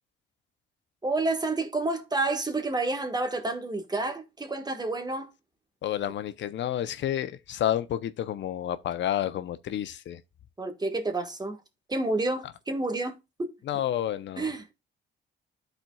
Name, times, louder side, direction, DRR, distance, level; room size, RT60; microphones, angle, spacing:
voice 1, 1.0-5.3 10.6-11.6 11.9-13.5 14.4-14.6, right 2 dB, 20° right, 1.4 m, -29 dB
voice 2, 5.8-10.2 12.4-12.5 13.6-14.5, left 11 dB, 65° left, 0.7 m, -30 dB
13.0 x 4.5 x 2.3 m
cardioid pair, 90°, 20 cm